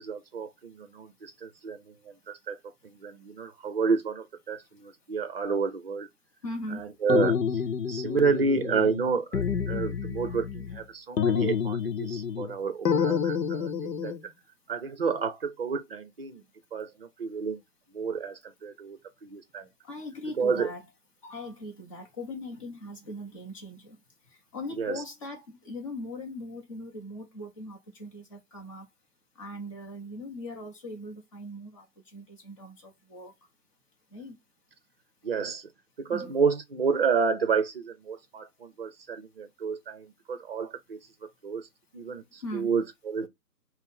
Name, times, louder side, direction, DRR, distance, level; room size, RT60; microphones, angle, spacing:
voice 1, 0.0-2.6 2.8-6.1 6.7-14.3 14.7-16.4 16.7-17.6 17.9-19.7 20.4-20.7 24.8-25.0 35.2-35.7 36.0-41.0 41.4-41.7 41.9-43.3, right 5 dB, 35° right, 0.6 m, -30 dB
voice 2, 6.4-6.8 19.8-20.8 21.2-24.0 24.5-28.9 29.4-31.9 32.1-33.3 34.1-34.4 36.1-36.3 42.4-42.7, left 1 dB, 20° left, 0.7 m, -40 dB
sound 1, 7.1-9.0 9.3-10.8 11.2-12.5 12.8-14.2, left 7 dB, 80° left, 0.8 m, -28 dB
5.3 x 2.1 x 4.2 m
figure-of-eight pair, 145°, 49 cm